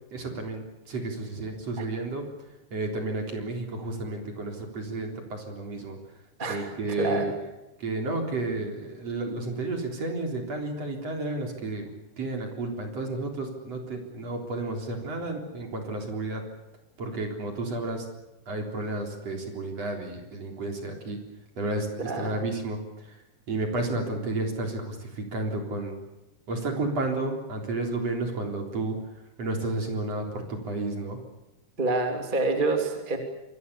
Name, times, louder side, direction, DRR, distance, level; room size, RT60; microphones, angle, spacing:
voice 1, 0.1-2.3 2.7-6.0 6.5-7.3 7.8-11.9 12.2-16.5 17.0-18.1 18.5-21.2 21.6-22.8 23.1-23.2 23.5-26.0 26.5-29.0 29.4-31.2, right 2 dB, 35° right, 3 dB, 4.4 m, -31 dB
voice 2, 6.4-6.7 7.0-7.3 22.0-22.4 31.8-33.2, right 3 dB, 15° right, 4 dB, 2.3 m, -27 dB
27.0 x 23.5 x 7.0 m, 0.95 s
omnidirectional pair, 5.3 m